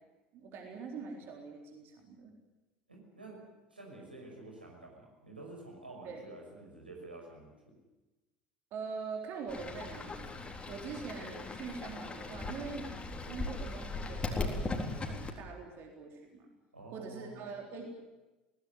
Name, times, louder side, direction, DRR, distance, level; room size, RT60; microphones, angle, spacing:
voice 1, 0.3-2.3 6.0-6.2 8.7-10.3 10.7-12.9 13.2-16.5 16.9-18.0, right 5 dB, 45° right, 2 dB, 3.9 m, -43 dB
voice 2, 2.9-3.4 3.7-7.5 16.7-17.3, right 2 dB, 85° right, 0 dB, 5.7 m, -49 dB
Fowl / Bird, 9.5-15.3, left 3 dB, 20° left, 3.8 m, -38 dB
22.0 x 18.5 x 9.4 m, 1.1 s
figure-of-eight pair, 70°, 5 cm